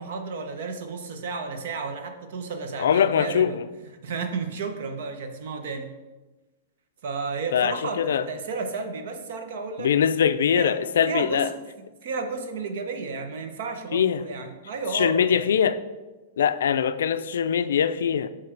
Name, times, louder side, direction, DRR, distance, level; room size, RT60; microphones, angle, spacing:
voice 1, 0.0-3.6 4.0-5.9 7.0-9.9 10.5-10.8 11.0-11.5 12.0-15.5, right 4 dB, 55° right, 6 dB, 0.8 m, -32 dB
voice 2, 2.8-3.6 7.5-8.3 9.8-11.5 13.9-14.2 14.9-15.8 16.4-18.3, left 8 dB, 80° left, 12 dB, 0.4 m, -22 dB
7.4 x 3.2 x 4.6 m, 1.2 s
supercardioid pair, 165°, 0 cm